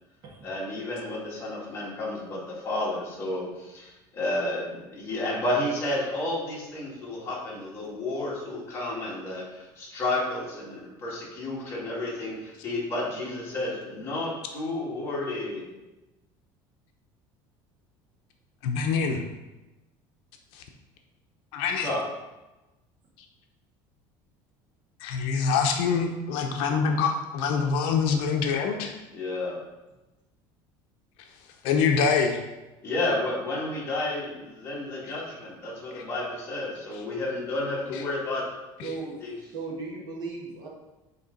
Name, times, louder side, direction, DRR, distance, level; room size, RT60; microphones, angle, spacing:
voice 1, 0.4-15.7 21.8-22.0 29.1-29.5 32.8-38.4 39.2-39.3, left 2 dB, 25° left, -5 dB, 2.0 m, -31 dB
voice 2, 18.6-19.2 20.5-20.6 21.5-21.9 25.0-28.9 31.6-32.4 35.1-35.2 35.9-36.1 37.9-38.0 38.8-38.9, left 5 dB, 70° left, 3 dB, 0.7 m, -25 dB
voice 3, 38.8-39.1 39.4-40.7, right 3 dB, 45° right, -2 dB, 1.4 m, -36 dB
8.5 x 3.3 x 3.9 m, 1.1 s
cardioid pair, 165°, 10 cm